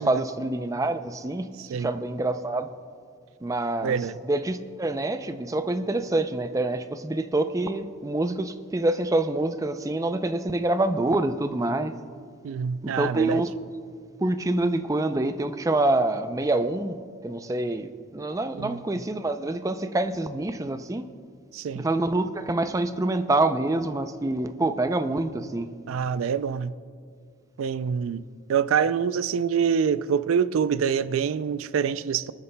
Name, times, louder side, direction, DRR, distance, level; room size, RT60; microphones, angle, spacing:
voice 1, 0.0-2.7 3.4-4.0 4.2-12.0 12.8-13.5 14.2-17.0 17.2-21.1 21.7-25.7, right 2 dB, 15° right, 9 dB, 0.4 m, -26 dB
voice 2, 1.6-1.9 3.8-4.2 12.4-13.4 18.5-18.8 21.5-21.9 25.9-26.7 27.6-28.2 28.5-32.3, right 7 dB, 90° right, 16 dB, 0.4 m, -25 dB
28.0 x 9.5 x 2.2 m, 2.2 s
head